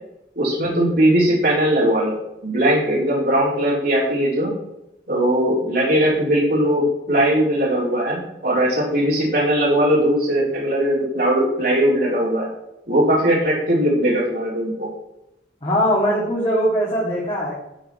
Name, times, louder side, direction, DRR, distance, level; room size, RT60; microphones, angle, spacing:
voice 1, 0.3-4.5 5.1-12.5 12.9-14.9, right 1 dB, 55° right, -6 dB, 4.4 m, -19 dB
voice 2, 15.6-17.5, equal, 30° left, -6 dB, 2.9 m, -20 dB
13.0 x 6.8 x 4.6 m, 0.87 s
head